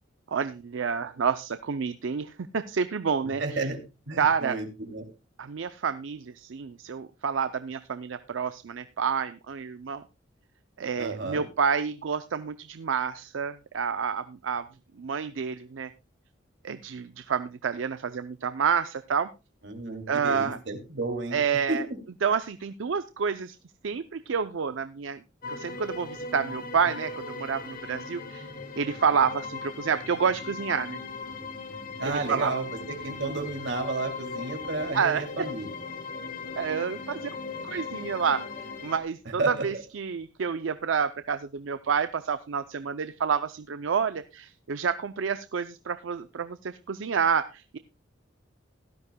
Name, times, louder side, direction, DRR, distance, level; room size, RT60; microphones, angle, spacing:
voice 1, 0.3-3.7 4.2-4.6 5.4-10.0 10.8-14.7 15.0-15.9 16.6-19.3 20.1-20.6 21.3-21.9 22.2-23.6 23.8-25.2 25.5-28.5 28.8-31.0 32.0-32.6 34.9-35.3 36.6-37.3 37.6-38.4 38.8-47.8, right 6 dB, 90° right, 11 dB, 0.5 m, -29 dB
voice 2, 3.4-3.8 4.1-5.1 11.0-11.4 19.6-21.4 21.7-22.0 32.0-32.7 33.0-35.7 39.4-39.7, right 2 dB, 70° right, 4 dB, 2.5 m, -32 dB
sound 1, 25.4-39.0, left 4 dB, 50° left, 1.7 m, -38 dB
16.5 x 12.5 x 2.2 m, 0.28 s
head